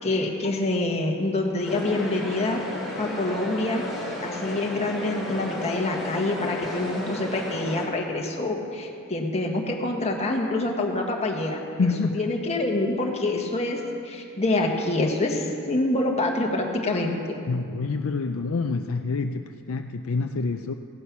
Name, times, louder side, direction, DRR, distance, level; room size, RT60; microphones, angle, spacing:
voice 1, 0.0-2.6 3.0-3.8 4.2-17.4, left 2 dB, 30° left, 0 dB, 1.5 m, -26 dB
sound 1, 1.6-7.8, left 1 dB, ahead, 2.9 m, -33 dB
voice 2, 11.8-12.3 17.5-20.7, left 4 dB, 65° left, 6 dB, 0.5 m, -27 dB
16.0 x 9.8 x 6.0 m, 2.4 s
head